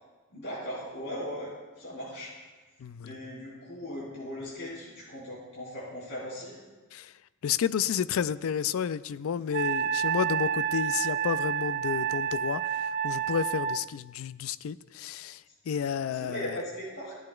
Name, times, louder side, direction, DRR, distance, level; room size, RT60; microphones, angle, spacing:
voice 1, 0.3-2.3 3.0-6.6 16.1-17.1, equal, 55° left, -8 dB, 3.5 m, -38 dB
voice 2, 2.8-3.2 6.9-7.1 7.4-15.4 15.7-16.4, left 8 dB, 80° left, 15 dB, 0.4 m, -31 dB
Wind instrument woodwind instrument, 9.5-13.8, right 8 dB, 45° right, 0.3 m, -29 dB
16.0 x 10.5 x 2.3 m, 1.3 s
head